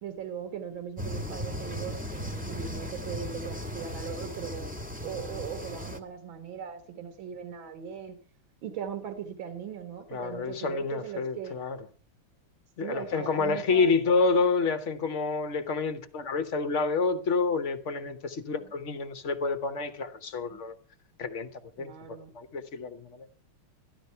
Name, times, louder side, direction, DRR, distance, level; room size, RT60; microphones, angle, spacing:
voice 1, 0.0-4.7 5.0-8.2 8.6-11.6 12.8-13.9 20.5-20.6 21.8-22.3, right 7 dB, 65° right, 2.1 m, -39 dB
sound 1, 1.0-6.0, equal, 5° right, 1.0 m, -37 dB
voice 2, 10.1-11.8 12.8-20.7 21.2-21.5 21.8-23.3, left 4 dB, 45° left, 1.0 m, -28 dB
13.5 x 11.5 x 5.6 m
omnidirectional pair, 2.4 m